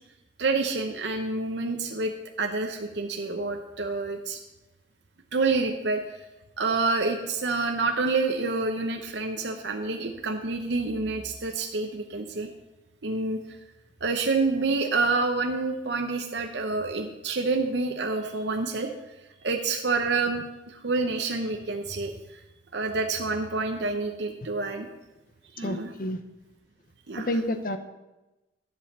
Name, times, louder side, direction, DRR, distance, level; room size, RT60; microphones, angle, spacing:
voice 1, 0.4-2.1 2.4-4.4 5.3-6.0 6.6-12.5 13.0-13.4 14.0-18.9 19.4-22.4 22.7-24.9 25.5-25.9 27.1-27.3, right 3 dB, 70° right, 3 dB, 0.8 m, -28 dB
voice 2, 25.6-26.2 27.2-27.8, left 1 dB, 50° left, 9 dB, 0.8 m, -29 dB
11.5 x 5.3 x 7.2 m, 1.0 s
head